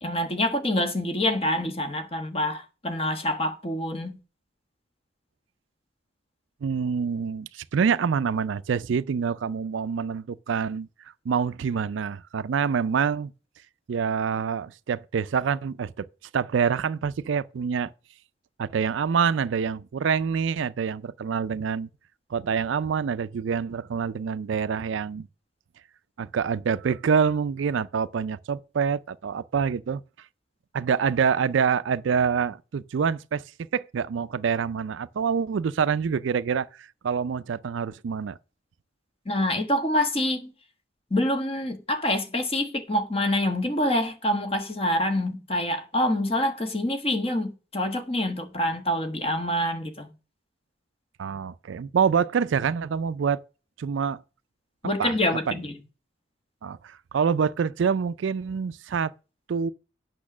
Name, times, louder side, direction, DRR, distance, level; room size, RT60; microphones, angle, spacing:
voice 1, 0.0-4.2 39.2-40.5 41.1-50.1 54.8-55.7, left 1 dB, 30° left, 1.3 m, -26 dB
voice 2, 6.6-10.9 11.3-13.3 13.9-16.1 16.3-17.9 18.6-21.9 22.3-25.3 26.2-30.0 30.7-33.4 33.7-38.4 51.2-53.4 53.8-54.2 55.0-55.2 55.5-55.6 56.6-59.1 59.5-59.7, right 6 dB, 75° right, 0.4 m, -26 dB
8.5 x 6.2 x 6.1 m
head